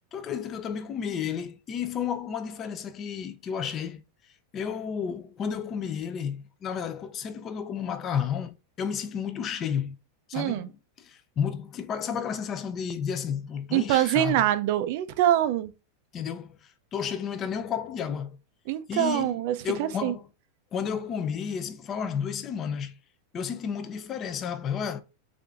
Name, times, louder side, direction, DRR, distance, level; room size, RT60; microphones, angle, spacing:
voice 1, 0.1-4.0 4.5-10.0 10.3-14.5 16.1-18.4 18.9-19.4 19.6-20.3 20.7-23.0 23.3-25.0, left 7 dB, 20° left, 0.4 m, -32 dB
voice 2, 10.3-10.7 13.7-15.7 18.7-20.1, right 13 dB, 45° right, 0.4 m, -25 dB
6.7 x 2.5 x 2.4 m
supercardioid pair, 175°, 0 cm